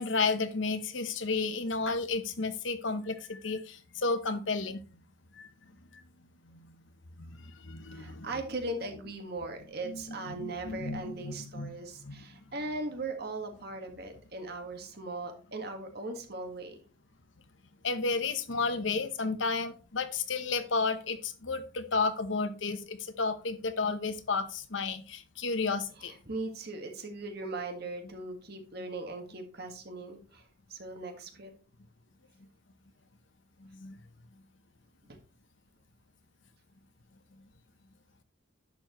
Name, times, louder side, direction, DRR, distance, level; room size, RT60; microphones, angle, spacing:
voice 1, 0.0-4.8 5.3-5.5 5.9-6.0 6.5-6.7 7.2-8.4 9.8-12.2 17.8-26.1 33.6-34.0, left 4 dB, 75° left, 10 dB, 0.9 m, -32 dB
voice 2, 7.9-16.8 26.0-30.4 30.7-31.5 35.1-35.2, right 2 dB, 55° right, 5 dB, 1.7 m, -39 dB
10.5 x 7.0 x 3.0 m, 0.37 s
head